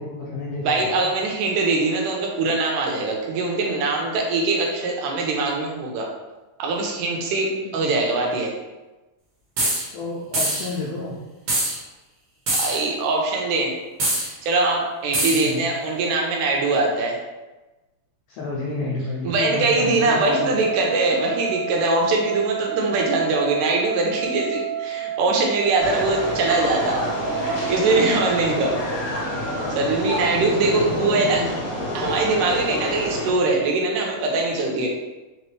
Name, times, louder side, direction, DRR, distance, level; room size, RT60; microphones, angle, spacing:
voice 1, 0.0-1.1 7.6-7.8 9.9-11.2 15.3-15.7 18.3-20.5 21.1-21.2 30.4-31.5, left 3 dB, 80° left, -5 dB, 1.4 m, -30 dB
voice 2, 0.6-6.1 6.6-8.5 12.5-13.7 14.1-17.2 19.2-27.0 27.7-28.8 29.8-31.4 31.9-34.9, right 3 dB, 90° right, 0 dB, 2.3 m, -22 dB
sound 1, 9.6-9.8 10.3-10.7 11.5-11.8 12.5-12.8 14.0-14.3 15.1-15.5, right 1 dB, 55° right, 1.9 m, -23 dB
sound 2, 20.3-28.5, right 9 dB, 70° right, 1.6 m, -30 dB
sound 3, 25.8-33.3, left 1 dB, 45° left, 1.8 m, -28 dB
4.9 x 3.0 x 3.2 m, 1.1 s
omnidirectional pair, 3.5 m